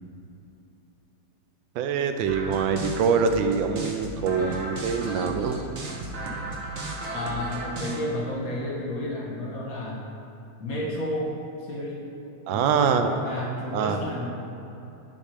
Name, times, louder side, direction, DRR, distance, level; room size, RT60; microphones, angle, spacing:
voice 1, 1.8-5.6 12.5-13.1 13.7-14.1, right 6 dB, 75° right, 7 dB, 1.2 m, -24 dB
sound 1, 2.3-8.0, right 2 dB, 50° right, 0.9 m, -35 dB
voice 2, 7.1-10.0 10.6-11.3 11.7-12.0 12.5-14.3, left 1 dB, 50° left, -2 dB, 1.3 m, -31 dB
10.5 x 4.5 x 4.8 m, 2.9 s
omnidirectional pair, 2.3 m